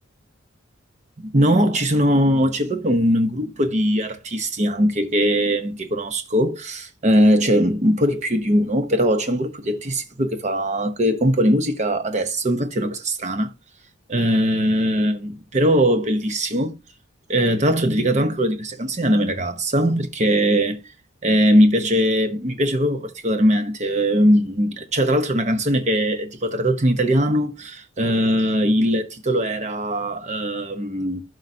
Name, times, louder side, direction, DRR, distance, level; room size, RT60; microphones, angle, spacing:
voice 1, 1.2-13.5 14.1-16.8 17.3-20.8 21.2-31.2, equal, 35° right, 0.9 m, -20 dB
12.0 x 4.8 x 2.8 m
head